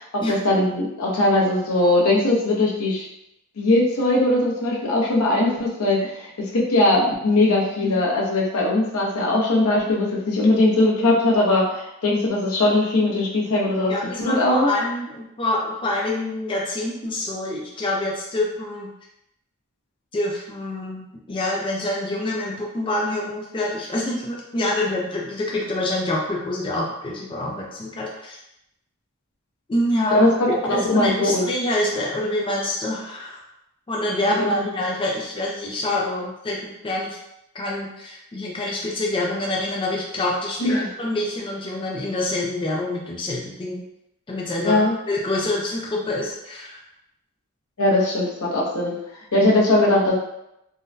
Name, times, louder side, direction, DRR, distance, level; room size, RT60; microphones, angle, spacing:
voice 1, 0.0-3.0 3.6-13.9 14.2-14.7 30.1-31.5 34.2-34.7 35.9-36.3 40.6-40.9 44.6-44.9 47.8-48.9 49.3-50.1, left 2 dB, 80° left, -4 dB, 0.8 m, -20 dB
voice 2, 7.8-8.1 13.9-18.9 20.1-28.4 29.7-30.3 30.6-33.4 33.9-36.0 36.4-37.2 37.5-43.8 44.3-46.8, left 1 dB, 25° left, -3 dB, 0.4 m, -26 dB
3.7 x 2.1 x 2.6 m, 0.83 s
head